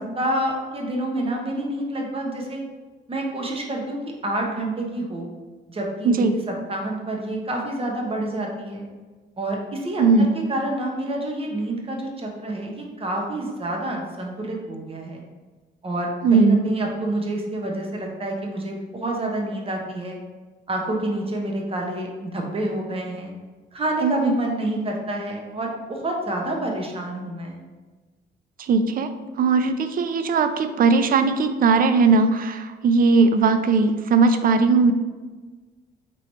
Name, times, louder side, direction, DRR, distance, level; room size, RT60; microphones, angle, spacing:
voice 1, 0.2-2.6 3.1-5.3 5.7-8.9 9.4-15.2 15.8-20.2 20.7-23.3 23.7-27.6, right 1 dB, 30° right, 0 dB, 0.9 m, -28 dB
voice 2, 10.0-10.3 16.2-16.6 24.0-24.3 28.6-29.1 29.4-34.9, right 4 dB, 45° right, 9 dB, 0.4 m, -18 dB
3.1 x 3.0 x 4.0 m, 1.3 s
cardioid pair, 90°, 20 cm